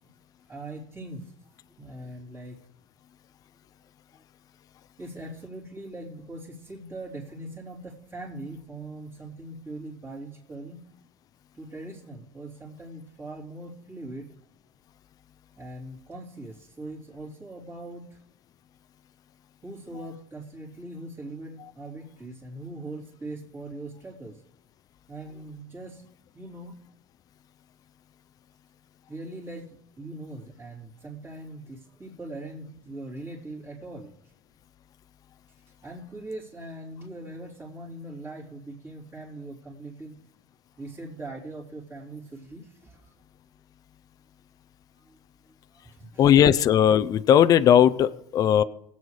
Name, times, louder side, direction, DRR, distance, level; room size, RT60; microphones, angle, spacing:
voice 1, 0.5-2.6 5.0-10.8 11.5-14.3 15.6-18.2 19.6-24.4 25.1-26.0 26.3-26.8 29.1-34.3 35.8-40.2 40.7-43.1 45.0-45.2 45.5-46.2, right 2 dB, 25° right, -6 dB, 3.3 m, -41 dB
voice 2, 46.2-48.6, left 9 dB, 35° left, 12 dB, 0.5 m, -18 dB
21.0 x 8.5 x 3.2 m, 0.78 s
supercardioid pair, 130°, 10 cm